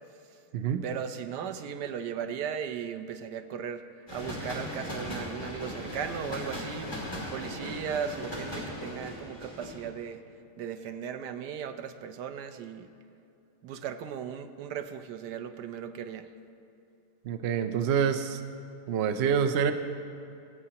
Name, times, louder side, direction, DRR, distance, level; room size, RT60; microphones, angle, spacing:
voice 1, 0.8-3.8 4.1-6.9 7.3-10.2 10.6-12.9 13.6-16.3, right 8 dB, 85° right, 9 dB, 1.3 m, -37 dB
sound 1, 4.1-9.9, left 1 dB, 15° left, 2.7 m, -38 dB
voice 2, 17.2-18.4 18.9-19.7, right 7 dB, 60° right, 7 dB, 0.7 m, -26 dB
23.5 x 8.4 x 2.9 m, 2.8 s
omnidirectional pair, 1.7 m